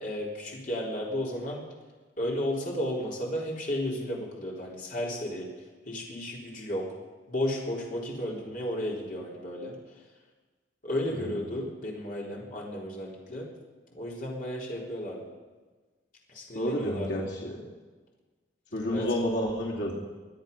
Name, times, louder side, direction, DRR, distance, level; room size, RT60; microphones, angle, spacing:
voice 1, 0.0-1.6 2.2-5.5 5.9-6.9 7.3-9.8 10.8-13.5 13.9-15.3 16.3-17.2 18.9-19.1, left 1 dB, 50° left, -3 dB, 3.8 m, -33 dB
voice 2, 11.1-11.5 16.5-17.6 18.7-19.9, equal, 85° left, -3 dB, 2.9 m, -30 dB
24.0 x 9.7 x 5.4 m, 1.3 s
head